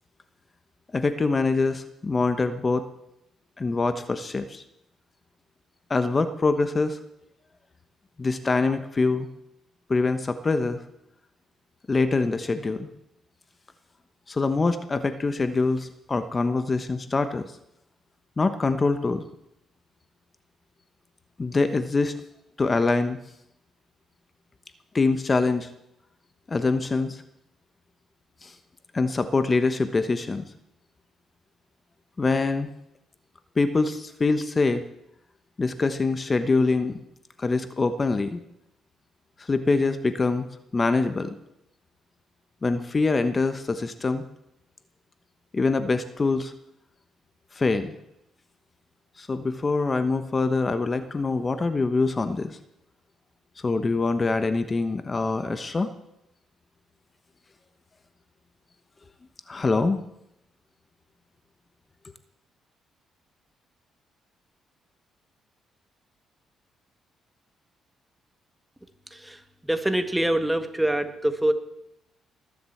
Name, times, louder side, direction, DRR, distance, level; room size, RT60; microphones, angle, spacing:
voice 1, 0.9-2.9 3.6-4.6 5.9-7.0 8.2-9.3 9.9-10.8 11.9-12.9 14.3-17.5 18.4-19.3 21.4-22.1 22.6-23.2 24.9-25.7 26.5-27.2 28.4-28.5 28.9-30.4 32.2-32.7 33.6-34.8 35.6-37.0 37.4-38.4 39.4-40.5 40.7-41.3 42.6-44.2 45.5-46.5 47.5-47.9 49.2-52.6 53.6-55.9 59.5-60.0, left 3 dB, 30° left, 10 dB, 1.1 m, -24 dB
voice 2, 69.1-71.5, right 1 dB, 5° right, 8 dB, 1.7 m, -25 dB
20.0 x 7.8 x 7.9 m, 0.81 s
cardioid pair, 90°, 0 cm